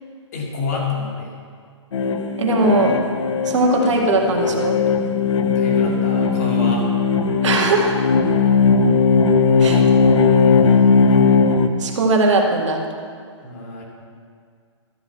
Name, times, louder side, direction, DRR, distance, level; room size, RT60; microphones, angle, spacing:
voice 1, 0.3-1.4 5.4-6.9 9.6-11.3 13.4-13.8, left 4 dB, 35° left, -2 dB, 2.2 m, -29 dB
sound 1, 1.9-11.7, left 5 dB, 70° left, 0.9 m, -17 dB
voice 2, 2.4-3.0 3.5-4.8 7.4-8.0 9.6-9.8 11.8-12.8, right 2 dB, 75° right, 1 dB, 2.0 m, -19 dB
12.5 x 5.0 x 8.1 m, 2.1 s
hypercardioid pair, 175°, 16 cm